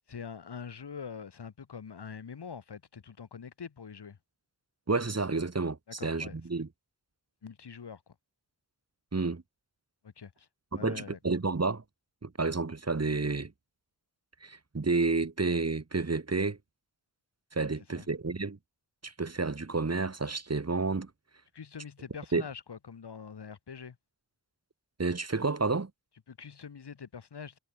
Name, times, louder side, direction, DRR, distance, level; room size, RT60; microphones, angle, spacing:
voice 1, 0.1-4.2 5.9-6.4 7.4-8.1 10.0-10.5 10.7-11.2 17.9-18.1 21.5-24.0 26.3-27.6, left 6 dB, 85° left, 4.5 m, -44 dB
voice 2, 4.9-6.7 9.1-9.4 10.7-11.8 12.2-13.5 14.4-16.6 17.5-18.6 19.0-21.1 22.3-22.4 25.0-25.9, right 3 dB, 40° right, 3.6 m, -30 dB
wide cardioid pair, 85°, 39 cm